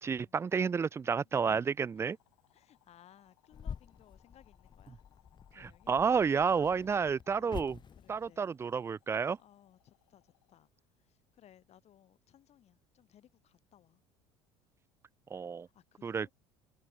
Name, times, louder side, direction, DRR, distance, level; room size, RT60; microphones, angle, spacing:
voice 1, 0.0-2.2 5.6-7.8 8.1-9.4 15.3-15.7 16.0-16.3, right 6 dB, 20° right, 0.3 m, -30 dB
sound 1, 0.8-10.7, left 20 dB, 75° left, 5.4 m, -72 dB
voice 2, 1.2-2.0 2.5-5.0 5.5-5.9 7.3-8.5 9.4-14.0 15.4-16.3, left 11 dB, 45° left, 4.0 m, -62 dB
sound 2, 3.5-8.4, left 7 dB, 30° left, 1.2 m, -48 dB
hypercardioid pair, 70°, 15 cm